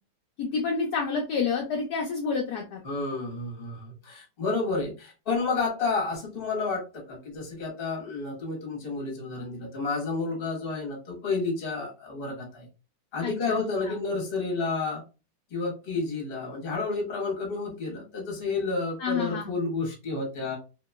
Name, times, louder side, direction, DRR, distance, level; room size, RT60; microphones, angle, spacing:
voice 1, 0.4-2.8 13.2-14.0 19.0-19.5, left 5 dB, 75° left, 1 dB, 0.9 m, -29 dB
voice 2, 2.8-12.7 13.1-15.0 15.5-20.6, left 3 dB, 40° left, 0 dB, 0.9 m, -30 dB
2.9 x 2.8 x 2.2 m, 0.30 s
omnidirectional pair, 2.2 m